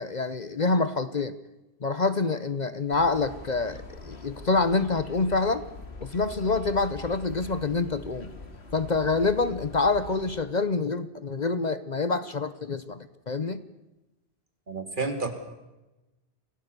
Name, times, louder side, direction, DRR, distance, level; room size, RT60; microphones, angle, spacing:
voice 1, 0.0-1.4 1.8-5.6 6.0-8.3 8.7-13.6, left 3 dB, 45° left, 13 dB, 1.0 m, -26 dB
sound 1, 2.9-10.4, left 3 dB, 90° left, 2.4 m, -44 dB
voice 2, 14.7-15.3, right 3 dB, 50° right, 6 dB, 2.8 m, -30 dB
27.0 x 17.5 x 6.8 m, 1.0 s
omnidirectional pair, 1.1 m